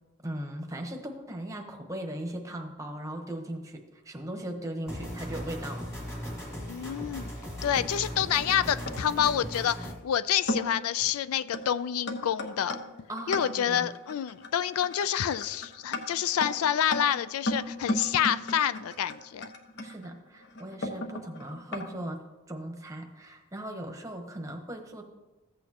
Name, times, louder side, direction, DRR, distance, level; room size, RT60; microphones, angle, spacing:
voice 1, 0.2-5.8 13.1-13.9 19.8-22.2 22.5-25.0, right 1 dB, 15° right, 3 dB, 1.0 m, -38 dB
sound 1, 4.9-9.9, equal, 15° left, 1.8 m, -38 dB
voice 2, 6.6-7.3 7.6-12.8 13.3-19.5, left 9 dB, 75° left, 16 dB, 0.3 m, -28 dB
sound 2, 8.4-9.3 10.0-10.1 10.5-10.9 11.5-11.7 12.1-21.9, left 1 dB, 50° left, 1.1 m, -35 dB
15.0 x 8.4 x 2.9 m, 1.1 s
head